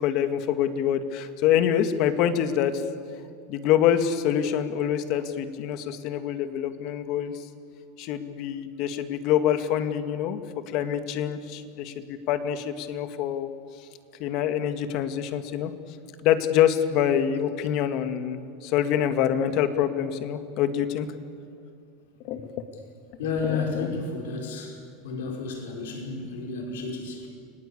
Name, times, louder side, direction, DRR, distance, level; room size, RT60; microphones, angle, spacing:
voice 1, 0.0-2.8 3.5-7.5 8.0-10.4 10.7-13.5 13.8-13.9 14.2-15.7 16.2-21.1 22.2-22.7 23.4-24.0, left 10 dB, 55° left, 9 dB, 2.0 m, -25 dB
voice 2, 23.2-24.8 25.0-27.3, left 4 dB, 85° left, 1 dB, 5.3 m, -31 dB
29.0 x 19.5 x 8.5 m, 2.3 s
supercardioid pair, 115°, 0 cm